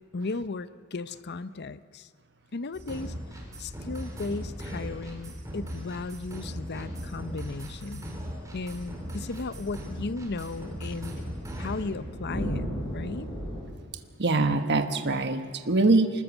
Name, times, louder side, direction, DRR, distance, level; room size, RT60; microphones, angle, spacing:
voice 1, 0.1-2.1 2.5-11.2 11.6-13.3, left 3 dB, 50° left, 14 dB, 0.7 m, -36 dB
sound 1, 2.7-11.8, equal, 15° right, 4.3 m, -38 dB
sound 2, 8.6-13.6, equal, 25° left, 6.7 m, -37 dB
voice 2, 14.2-16.2, right 2 dB, 55° right, 8 dB, 1.2 m, -23 dB
25.0 x 21.0 x 7.2 m, 2.1 s
head